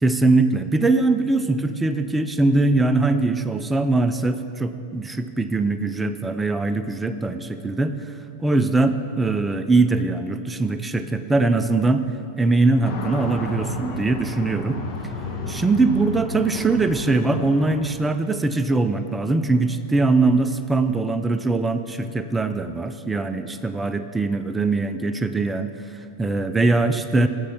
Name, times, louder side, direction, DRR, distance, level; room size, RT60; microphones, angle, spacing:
voice 1, 0.0-8.0 8.4-12.1 12.4-14.8 15.5-25.7 26.2-27.3, right 3 dB, 10° right, 9 dB, 0.4 m, -21 dB
sound 1, 12.8-17.8, left 2 dB, 40° left, 0.9 m, -31 dB
7.4 x 5.2 x 5.7 m, 2.6 s
figure-of-eight pair, 90°, 0 cm